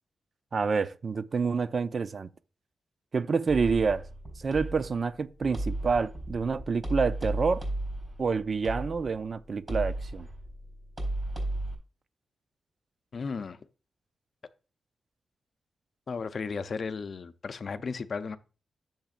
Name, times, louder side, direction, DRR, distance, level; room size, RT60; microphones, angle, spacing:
voice 1, 0.5-2.3 3.1-4.1 4.4-7.6 8.2-10.3, right 5 dB, 50° right, 0.5 m, -28 dB
sound 1, 3.5-11.7, right 1 dB, 25° right, 3.7 m, -35 dB
voice 2, 13.1-13.6 16.1-18.4, left 5 dB, 55° left, 0.6 m, -34 dB
10.5 x 7.3 x 2.5 m
cardioid pair, 85°, 0 cm